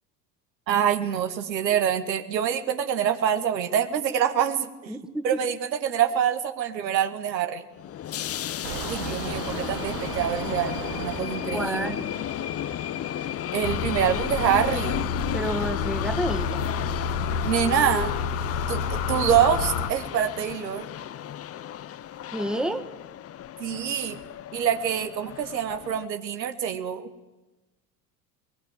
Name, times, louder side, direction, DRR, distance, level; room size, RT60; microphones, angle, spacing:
voice 1, 0.7-4.9 5.2-7.6 8.9-11.9 13.5-15.1 17.4-18.1 18.7-20.9 23.6-24.2 24.5-27.1, right 9 dB, 80° right, 8 dB, 1.9 m, -25 dB
voice 2, 4.9-5.3 11.5-12.1 15.3-16.6 22.3-22.9, right 1 dB, ahead, 6 dB, 1.9 m, -29 dB
sound 1, 7.7-26.1, left 11 dB, 30° left, 0.8 m, -34 dB
sound 2, 8.6-13.6 14.2-14.3, right 12 dB, 50° right, 1.4 m, -38 dB
sound 3, 13.6-19.9, left 6 dB, 60° left, 1.8 m, -29 dB
21.5 x 20.5 x 9.2 m, 1.1 s
hypercardioid pair, 80°, 50 cm